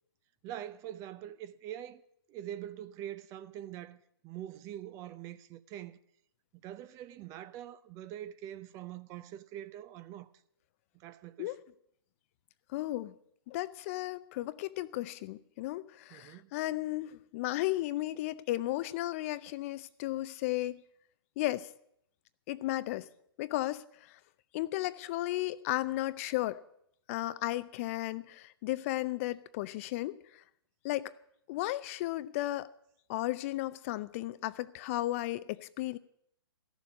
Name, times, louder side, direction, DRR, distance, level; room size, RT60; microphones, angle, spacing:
voice 1, 0.4-2.0 2.3-6.0 6.5-10.3 10.9-11.6 16.1-16.5, right 11 dB, 25° right, 0.6 m, -44 dB
voice 2, 12.7-13.1 13.5-20.8 21.4-21.7 22.5-23.1 23.4-23.8 24.5-26.6 27.1-30.2 30.8-31.1 31.5-32.7 33.1-36.0, left 16 dB, 35° left, 0.5 m, -34 dB
14.5 x 7.1 x 9.4 m
hypercardioid pair, 130°, 13 cm